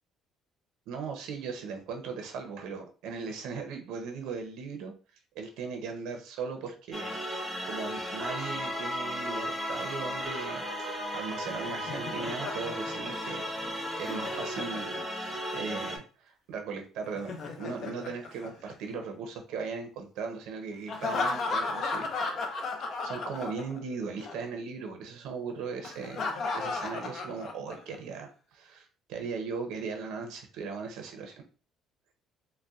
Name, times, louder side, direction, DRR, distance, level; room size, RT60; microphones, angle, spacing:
voice 1, 0.9-4.9 5.3-7.2 7.7-10.9 11.1-15.0 15.5-22.1 22.7-31.3, right 5 dB, 80° right, 4 dB, 0.7 m, -38 dB
sound 1, 6.9-16.0, equal, 5° right, 0.7 m, -35 dB
Laughter, 11.3-15.4 17.0-19.2 20.9-23.9 24.2-24.4 25.8-28.0, left 3 dB, 50° left, 0.5 m, -35 dB
4.0 x 2.1 x 2.4 m, 0.37 s
cardioid pair, 120°, 0 cm